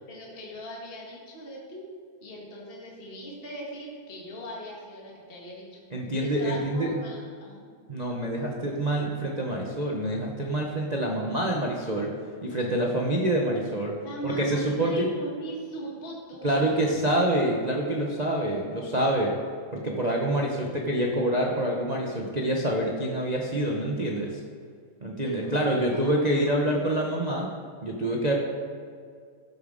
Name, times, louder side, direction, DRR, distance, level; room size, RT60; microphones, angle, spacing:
voice 1, 0.1-1.9 2.2-5.8 6.2-7.7 14.0-16.9 25.2-25.7 25.9-26.0 26.5-26.7, right 1 dB, 25° left, -4 dB, 1.9 m, -39 dB
voice 2, 5.9-6.9 7.9-12.1 12.4-13.9 14.2-15.1 16.4-19.3 19.7-24.4 25.0-27.5 27.8-28.3, right 1 dB, 55° right, -1 dB, 0.4 m, -26 dB
13.5 x 7.2 x 4.0 m, 2.1 s
omnidirectional pair, 2.4 m